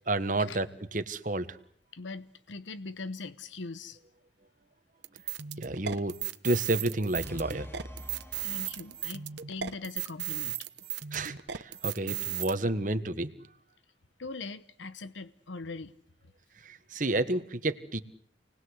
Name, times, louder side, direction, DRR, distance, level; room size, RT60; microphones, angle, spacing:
voice 1, 0.1-0.7 0.9-1.6 5.6-6.1 6.4-7.7 11.1-13.3 16.6-18.0, right 2 dB, 45° right, 1.5 m, -30 dB
voice 2, 1.9-4.0 8.4-10.6 11.2-11.4 14.2-15.9, left 3 dB, 90° left, 1.0 m, -41 dB
sound 1, 5.0-12.5, right 11 dB, 70° right, 1.1 m, -36 dB
sound 2, 7.2-9.4, equal, 15° left, 1.6 m, -46 dB
29.0 x 20.0 x 8.1 m
head